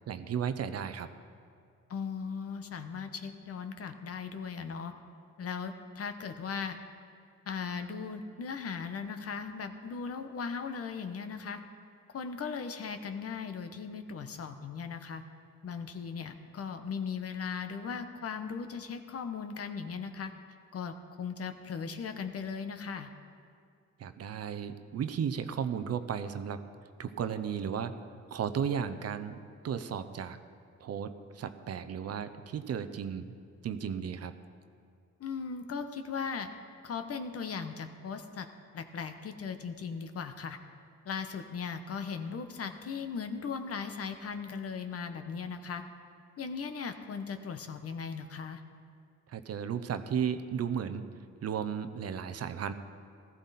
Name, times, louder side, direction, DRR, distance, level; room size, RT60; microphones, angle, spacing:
voice 1, 0.1-1.1 24.0-26.6 27.0-27.9 28.3-30.4 30.8-33.3 33.6-34.3 49.3-51.0 51.4-52.7, right 7 dB, 55° right, 10 dB, 0.8 m, -34 dB
voice 2, 1.9-4.9 5.4-6.8 7.5-11.6 12.1-15.2 15.6-20.3 20.7-23.1 35.2-36.5 36.8-38.5 38.7-40.6 41.0-45.8 46.4-48.6, left 6 dB, 50° left, 8 dB, 1.1 m, -38 dB
15.5 x 14.0 x 4.2 m, 2.4 s
cardioid pair, 90°, 30 cm